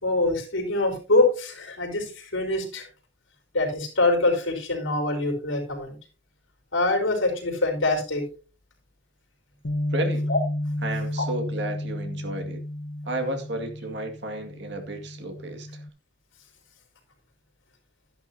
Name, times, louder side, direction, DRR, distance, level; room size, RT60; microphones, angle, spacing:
voice 1, 0.0-2.9 3.5-5.9 6.7-8.3 10.3-10.4, left 2 dB, 85° left, 4.4 m, -24 dB
Bass guitar, 9.6-15.9, left 1 dB, 65° left, 1.2 m, -32 dB
voice 2, 9.9-10.2 10.8-12.6 13.0-15.8, right 1 dB, 60° right, 2.2 m, -32 dB
12.5 x 11.0 x 2.8 m
head